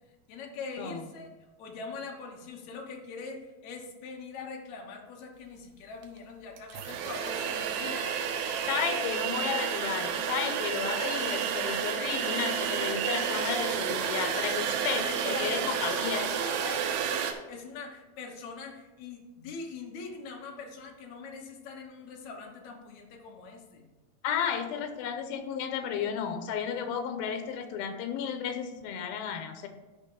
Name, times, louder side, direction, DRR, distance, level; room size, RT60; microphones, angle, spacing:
voice 1, 0.3-1.3 1.6-8.1 14.8-23.8, left 4 dB, 65° left, 2 dB, 2.1 m, -42 dB
sound 1, 6.0-6.1 6.6-17.3, right 8 dB, 90° right, 2.7 m, -31 dB
voice 2, 8.7-16.3 24.2-29.7, left 7 dB, 85° left, 7 dB, 2.6 m, -33 dB
12.0 x 5.3 x 3.8 m, 1.2 s
omnidirectional pair, 4.3 m